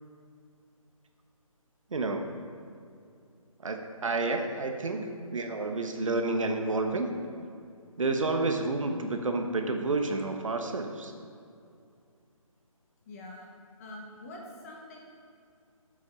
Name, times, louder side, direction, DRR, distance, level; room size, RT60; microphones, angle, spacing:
voice 1, 1.9-2.2 3.6-7.1 8.0-11.1, right 3 dB, 65° right, 4 dB, 1.1 m, -30 dB
voice 2, 13.0-13.5 13.8-15.0, left 1 dB, 25° left, -2 dB, 1.5 m, -45 dB
9.5 x 7.5 x 5.6 m, 2.4 s
figure-of-eight pair, 150°, 18 cm